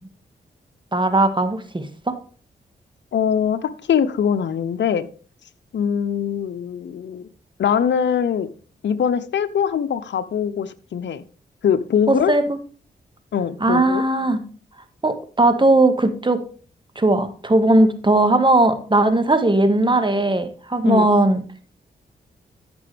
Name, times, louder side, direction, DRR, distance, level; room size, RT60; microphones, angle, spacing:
voice 1, 0.9-2.2 12.1-12.6 13.6-14.4 15.0-16.4 17.0-21.4, right 2 dB, 25° right, 8 dB, 1.8 m, -18 dB
voice 2, 3.1-5.1 5.7-7.3 7.6-8.5 8.8-11.2 11.6-12.3 13.3-14.0 20.8-21.1, left 8 dB, 70° left, 11 dB, 0.8 m, -22 dB
14.0 x 6.1 x 3.5 m, 0.40 s
supercardioid pair, 45°, 19 cm